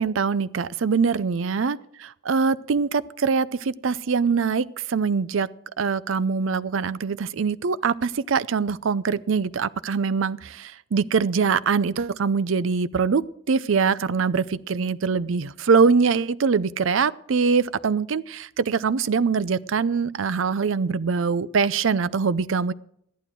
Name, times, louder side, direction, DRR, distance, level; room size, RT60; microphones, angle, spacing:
voice 1, 0.0-1.8 2.3-5.5 5.8-22.7, right 5 dB, 75° right, 17 dB, 0.5 m, -23 dB
14.0 x 11.5 x 4.6 m, 0.69 s
head